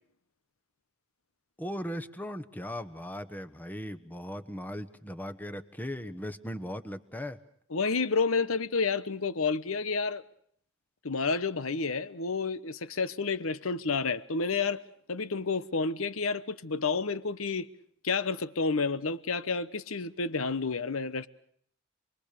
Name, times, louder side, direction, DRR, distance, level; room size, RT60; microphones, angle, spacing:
voice 1, 1.6-7.4, equal, 10° left, 1.2 m, -38 dB
voice 2, 7.7-10.2 11.0-14.8 15.1-17.7 18.0-21.3, left 4 dB, 75° left, 1.0 m, -30 dB
28.0 x 21.5 x 6.8 m
head